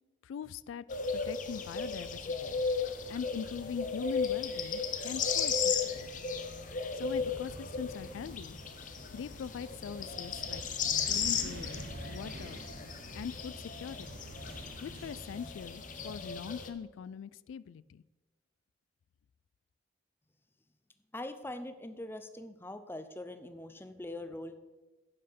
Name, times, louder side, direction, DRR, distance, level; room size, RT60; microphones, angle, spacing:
voice 1, 0.2-0.8 1.1-2.5 3.1-6.2 6.9-8.6 9.1-10.6 11.1-12.6 13.1-14.3 14.8-18.0, left 7 dB, 85° left, 19 dB, 0.3 m, -42 dB
sound 1, 0.9-16.7, left 5 dB, 45° left, 0.8 m, -35 dB
sound 2, 7.0-15.5, right 2 dB, 50° right, 0.8 m, -48 dB
voice 2, 21.1-24.5, left 1 dB, 10° left, 10 dB, 0.6 m, -42 dB
9.8 x 7.7 x 5.1 m, 1.1 s
head